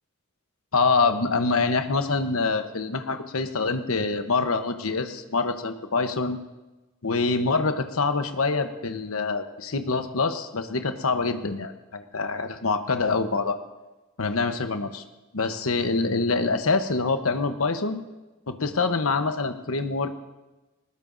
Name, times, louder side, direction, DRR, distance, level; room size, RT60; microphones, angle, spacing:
voice 1, 0.7-6.4 7.0-13.6 14.2-15.0 15.3-18.0 18.5-20.1, left 4 dB, 80° left, 7 dB, 1.0 m, -25 dB
21.0 x 19.5 x 2.6 m, 1.1 s
head